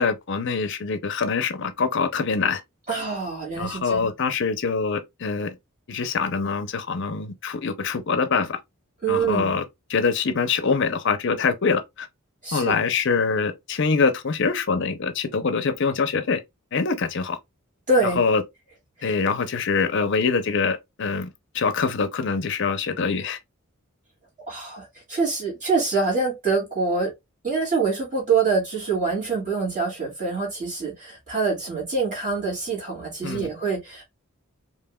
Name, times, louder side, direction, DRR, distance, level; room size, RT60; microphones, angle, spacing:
voice 1, 0.0-2.6 3.6-5.5 5.9-8.6 9.1-9.6 9.9-12.1 12.5-16.4 16.7-17.4 18.2-18.4 19.0-21.3 21.5-23.4 33.2-33.5, left 5 dB, 55° left, 0.6 m, -24 dB
voice 2, 2.9-4.1 9.0-9.6 12.4-12.8 17.9-18.2 19.0-19.1 24.5-27.1 27.4-34.0, right 4 dB, 35° right, 2.5 m, -25 dB
4.8 x 2.9 x 2.2 m
head